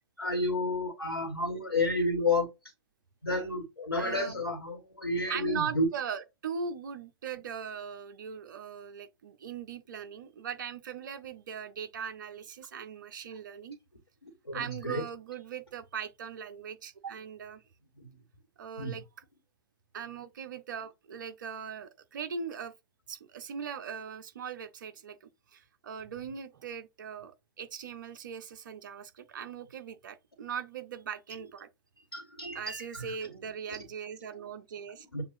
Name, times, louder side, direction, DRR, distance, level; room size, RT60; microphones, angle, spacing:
voice 1, 0.2-2.5 3.2-5.9 14.2-15.0 18.0-18.1 18.8-19.0 32.1-33.1 33.7-33.8 35.1-35.2, left 2 dB, 85° left, 1.5 m, -31 dB
voice 2, 3.9-4.3 5.2-13.8 14.5-17.6 18.6-19.0 19.9-22.7 23.1-31.7 32.5-35.1, right 7 dB, 55° right, 0.7 m, -40 dB
7.1 x 2.6 x 2.7 m
figure-of-eight pair, 115°, 13 cm